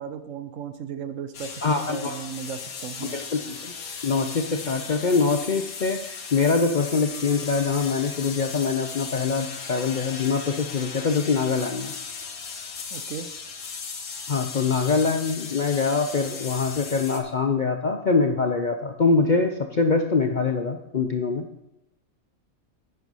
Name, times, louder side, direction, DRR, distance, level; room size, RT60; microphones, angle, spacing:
voice 1, 0.0-1.6 1.9-3.2 12.9-13.3, right 7 dB, 65° right, 11 dB, 1.0 m, -35 dB
sound 1, 1.3-17.2, left 5 dB, 80° left, 1.6 m, -37 dB
voice 2, 1.6-2.2 3.1-3.7 4.0-11.9 14.3-21.4, left 4 dB, 50° left, 5 dB, 0.6 m, -24 dB
9.4 x 7.7 x 5.5 m, 0.84 s
omnidirectional pair, 1.5 m